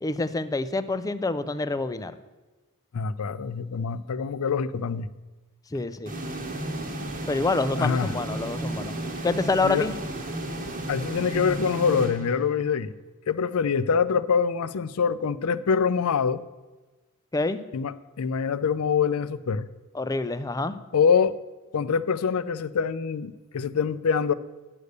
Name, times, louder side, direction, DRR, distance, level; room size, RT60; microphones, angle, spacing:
voice 1, 0.0-2.1 5.7-6.1 7.3-10.0 17.3-17.6 19.9-20.8, left 3 dB, 15° left, 11 dB, 0.4 m, -27 dB
voice 2, 2.9-5.1 7.8-8.1 9.6-9.9 10.9-12.9 13.3-16.4 17.7-19.7 20.9-21.4 21.7-24.3, left 6 dB, 70° left, 15 dB, 0.5 m, -25 dB
sound 1, 6.1-12.8, right 1 dB, 40° right, 1.2 m, -33 dB
9.7 x 6.6 x 6.6 m, 1.2 s
head